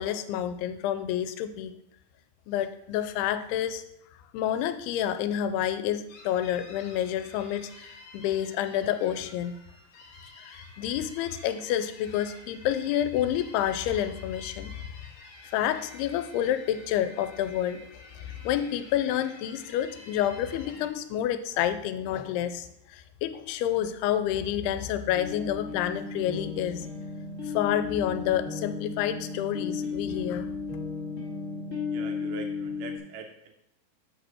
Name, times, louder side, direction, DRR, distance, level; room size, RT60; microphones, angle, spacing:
voice 1, 0.0-1.7 2.5-3.8 4.3-9.5 10.4-14.7 15.5-17.8 18.2-26.9 27.4-30.5, left 11 dB, 90° left, 10 dB, 2.6 m, -29 dB
sound 1, 6.1-20.9, left 2 dB, 65° left, 1.8 m, -50 dB
sound 2, 25.0-33.0, left 4 dB, 30° left, 1.0 m, -35 dB
voice 2, 31.8-33.5, right 5 dB, 80° right, 5 dB, 2.0 m, -43 dB
7.5 x 5.1 x 6.1 m, 0.80 s
omnidirectional pair, 4.5 m